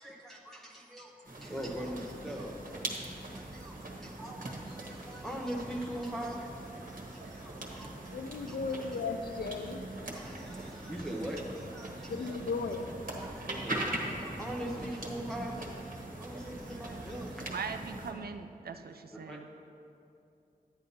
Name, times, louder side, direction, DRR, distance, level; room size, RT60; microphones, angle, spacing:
voice 1, 0.0-2.8 3.3-8.9 10.1-12.4 13.2-17.4 19.3-19.4, right 1 dB, ahead, -3 dB, 0.8 m, -42 dB
sound 1, 1.2-18.1, right 1 dB, 60° right, 1.4 m, -41 dB
voice 2, 8.1-9.8 12.1-12.9, left 4 dB, 85° left, 6 dB, 0.5 m, -35 dB
voice 3, 17.5-19.5, right 5 dB, 80° right, 8 dB, 0.5 m, -40 dB
10.0 x 9.4 x 2.8 m, 2.6 s
cardioid pair, 55°, 16 cm